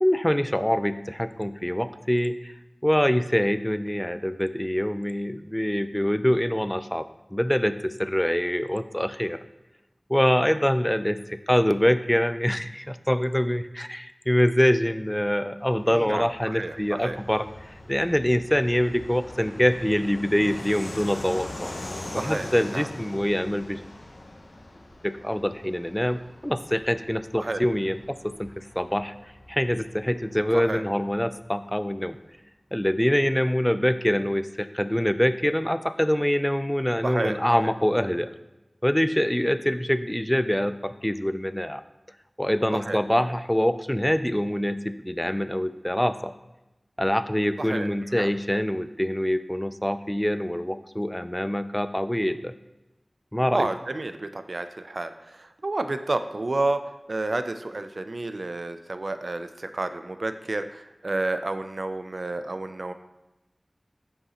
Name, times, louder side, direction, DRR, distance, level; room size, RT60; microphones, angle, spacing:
voice 1, 0.0-2.5 2.8-7.0 7.3-9.4 10.1-17.5 17.9-21.7 22.1-23.8 25.0-29.1 29.5-32.2 32.7-38.3 38.8-41.8 42.4-46.3 47.0-52.5 53.3-53.7, equal, 10° left, 12 dB, 0.4 m, -25 dB
Fixed-wing aircraft airplane, 15.6-31.8, left 1 dB, 90° left, 0.8 m, -42 dB
voice 2, 15.9-17.2 22.2-22.5 22.7-22.9 27.4-27.6 30.5-30.8 37.0-37.4 37.6-37.7 42.7-43.0 47.6-48.3 53.5-56.8 57.1-62.9, right 2 dB, 75° right, 9 dB, 0.4 m, -30 dB
9.4 x 5.6 x 2.9 m, 0.99 s
wide cardioid pair, 45°, 0 cm